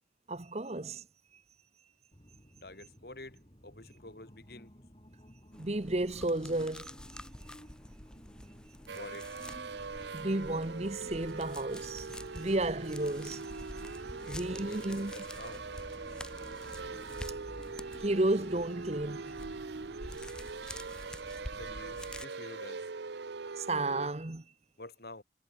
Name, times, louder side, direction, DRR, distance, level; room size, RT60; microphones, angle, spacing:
voice 1, 0.3-1.0 5.6-6.9 10.1-12.1 12.3-14.0 14.3-15.1 18.0-19.4 23.6-24.4, right 2 dB, 35° right, 1.0 m, -33 dB
sound 1, 2.1-20.5, equal, 30° left, 5.4 m, -56 dB
voice 2, 2.6-4.7 8.9-9.3 14.2-15.7 21.5-22.8 24.8-25.2, left 2 dB, 55° left, 3.4 m, -49 dB
sound 2, 5.5-22.3, left 1 dB, 5° left, 0.9 m, -48 dB
sound 3, 8.9-24.1, right 4 dB, 70° right, 0.7 m, -42 dB
head